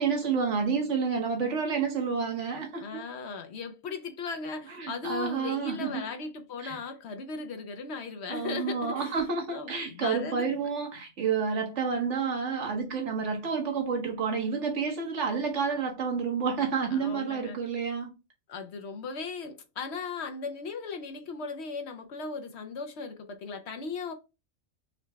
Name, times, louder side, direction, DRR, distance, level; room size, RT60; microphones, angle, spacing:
voice 1, 0.0-3.0 4.8-6.0 6.6-6.8 8.3-18.1, right 5 dB, 65° right, 1.3 m, -29 dB
voice 2, 2.8-9.2 9.5-10.5 16.9-17.6 18.5-24.1, left 4 dB, 65° left, 0.8 m, -37 dB
3.8 x 2.2 x 4.5 m
omnidirectional pair, 1.3 m